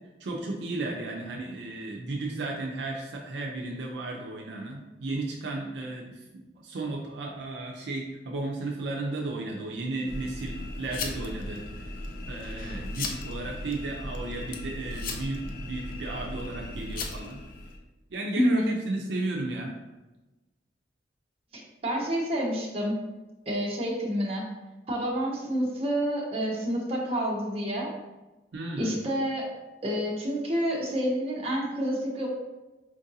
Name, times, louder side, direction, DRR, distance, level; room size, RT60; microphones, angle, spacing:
voice 1, 0.2-6.2 6.6-11.9 12.3-17.4 18.1-19.8 28.5-29.0, right 2 dB, 75° right, -1 dB, 0.5 m, -34 dB
sound 1, 10.1-17.8, left 2 dB, 50° left, 0.4 m, -37 dB
voice 2, 18.4-18.7 21.5-23.0 23.5-24.4 24.9-27.9 28.8-29.5 29.8-32.3, equal, 35° right, -3 dB, 0.8 m, -28 dB
4.5 x 2.6 x 2.7 m, 1.1 s
head